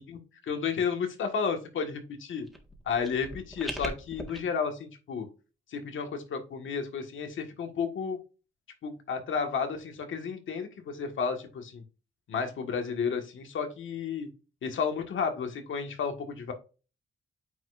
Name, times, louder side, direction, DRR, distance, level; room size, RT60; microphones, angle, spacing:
voice 1, 0.1-2.0 2.3-2.4 2.9-5.3 5.7-8.2 8.8-11.8 12.3-14.3 14.6-16.5, left 6 dB, 75° left, 5 dB, 1.6 m, -32 dB
sound 1, 2.5-4.4, equal, ahead, 1.6 m, -40 dB
9.1 x 4.6 x 2.5 m, 0.32 s
cardioid pair, 100°, 20 cm